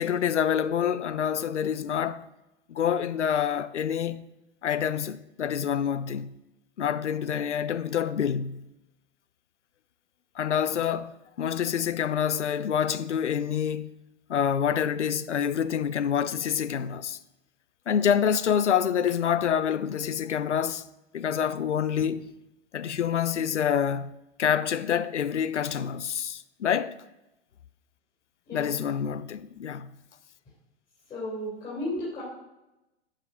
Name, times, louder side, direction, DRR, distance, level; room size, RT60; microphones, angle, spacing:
voice 1, 0.0-2.2 2.7-4.3 4.6-6.4 6.8-8.7 10.4-13.9 14.3-17.2 17.9-20.8 21.1-22.2 22.7-27.0 28.5-29.9, left 8 dB, 90° left, 0.5 m, -27 dB
voice 2, 31.1-32.2, left 1 dB, 25° left, 3.4 m, -34 dB
11.5 x 5.0 x 4.2 m
figure-of-eight pair, 100°, 34 cm